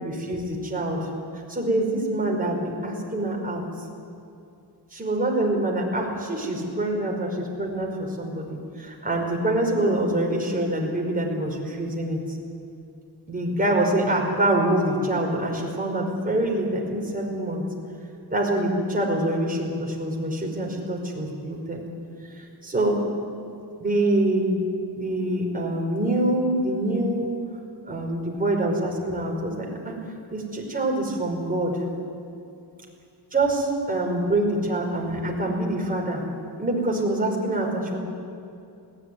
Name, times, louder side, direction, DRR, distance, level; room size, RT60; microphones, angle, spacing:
voice 1, 0.0-1.1 1.5-3.6 4.9-12.2 13.3-17.6 18.3-21.8 22.4-23.0 23.8-24.5 25.0-27.3 27.9-30.0 30.3-31.8 33.3-36.2 36.6-38.0, right 1 dB, 20° right, -1 dB, 5.2 m, -25 dB
21.0 x 18.0 x 9.7 m, 2.6 s
wide cardioid pair, 130°, 41 cm